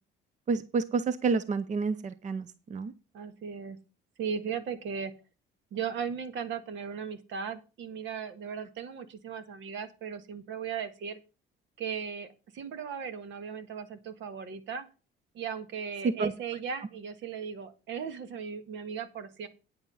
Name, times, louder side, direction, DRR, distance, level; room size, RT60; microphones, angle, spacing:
voice 1, 0.5-2.9 16.2-16.3, right 4 dB, 35° right, 14 dB, 0.7 m, -29 dB
voice 2, 3.1-3.8 4.2-5.1 5.7-11.2 11.8-14.9 15.3-19.5, right 7 dB, 70° right, 11 dB, 1.6 m, -37 dB
9.3 x 8.1 x 5.6 m, 0.33 s
cardioid pair, 105°, 20 cm